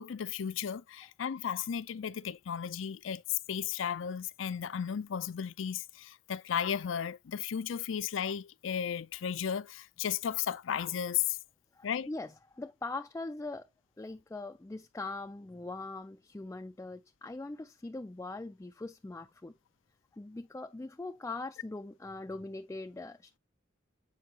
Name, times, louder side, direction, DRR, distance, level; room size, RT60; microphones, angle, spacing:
voice 1, 0.0-11.4 11.8-12.1, left 8 dB, 75° left, 0.4 m, -34 dB
voice 2, 11.7-13.7 14.0-19.5 20.2-23.4, left 2 dB, 15° left, 0.3 m, -41 dB
7.9 x 4.7 x 2.8 m
head